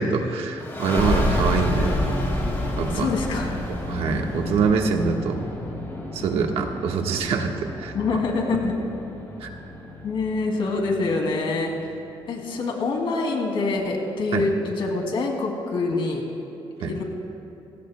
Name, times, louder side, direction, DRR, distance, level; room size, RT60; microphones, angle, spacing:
voice 1, 0.0-2.0 2.7-3.1 3.9-5.5 6.1-7.5 7.8-7.9 9.4-9.5 14.3-14.4 16.8-16.9, right 5 dB, 85° right, 3 dB, 1.4 m, -24 dB
sound 1, 0.6-11.9, left 1 dB, 25° left, 3.1 m, -29 dB
voice 2, 2.9-3.5 7.9-8.8 10.0-11.7 12.3-16.2 16.8-17.0, left 3 dB, 65° left, 1 dB, 2.4 m, -25 dB
27.5 x 17.0 x 2.2 m, 2.8 s
cardioid pair, 140°, 10 cm